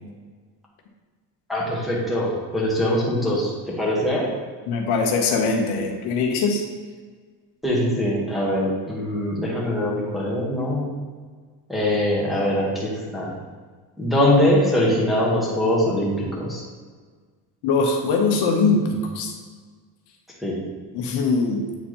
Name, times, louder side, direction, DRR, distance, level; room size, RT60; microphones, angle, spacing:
voice 1, 1.5-3.5 3.8-4.3 7.6-10.8 11.7-13.3 14.0-16.6 20.4-20.6, left 1 dB, ahead, -5 dB, 1.2 m, -22 dB
voice 2, 4.7-6.6 17.6-19.3 20.9-21.6, left 4 dB, 70° left, 2 dB, 1.0 m, -21 dB
8.2 x 4.4 x 2.9 m, 1.5 s
cardioid pair, 145°, 42 cm